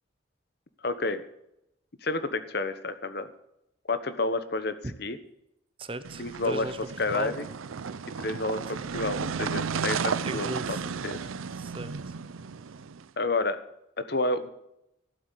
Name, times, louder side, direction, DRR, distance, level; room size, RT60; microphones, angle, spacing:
voice 1, 0.8-1.2 2.0-3.3 3.9-5.2 6.2-6.7 7.0-7.5 8.2-10.5 11.0-11.2 13.2-13.6 14.0-14.5, left 2 dB, 50° left, 11 dB, 1.0 m, -29 dB
voice 2, 5.8-6.8 7.1-7.4 8.7-8.8 10.2-10.8 11.5-12.1, right 2 dB, 25° right, 12 dB, 0.8 m, -37 dB
sound 1, 6.0-13.0, right 6 dB, 90° right, 0.6 m, -33 dB
12.5 x 7.8 x 8.3 m, 0.81 s
head